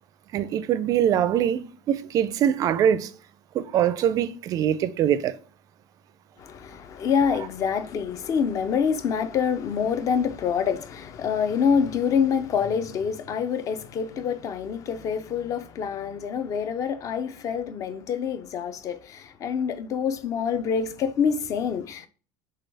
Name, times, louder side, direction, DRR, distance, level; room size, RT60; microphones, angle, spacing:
voice 1, 0.3-3.1 3.5-5.4, right 9 dB, 35° right, 0.4 m, -23 dB
voice 2, 6.4-22.1, left 7 dB, 35° left, 0.5 m, -26 dB
6.3 x 2.3 x 3.3 m
supercardioid pair, 140°, 10 cm